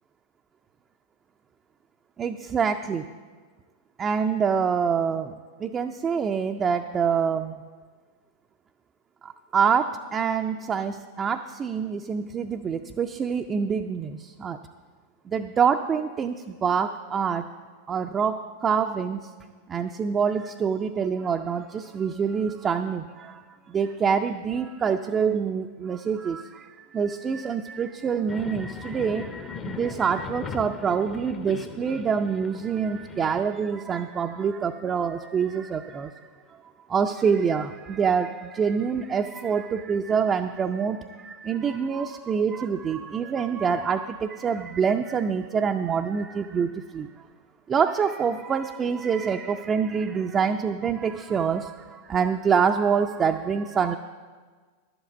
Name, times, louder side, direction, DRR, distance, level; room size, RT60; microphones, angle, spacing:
voice 1, 2.2-3.1 4.0-7.6 9.2-14.6 15.3-17.5 17.9-19.3 19.7-36.2 36.9-47.1 47.7-54.0, right 6 dB, 25° right, 4 dB, 0.4 m, -26 dB
sound 1, 28.3-33.4, left 6 dB, 25° left, 0.7 m, -39 dB
11.5 x 8.1 x 7.1 m, 1.5 s
figure-of-eight pair, 90°, 0 cm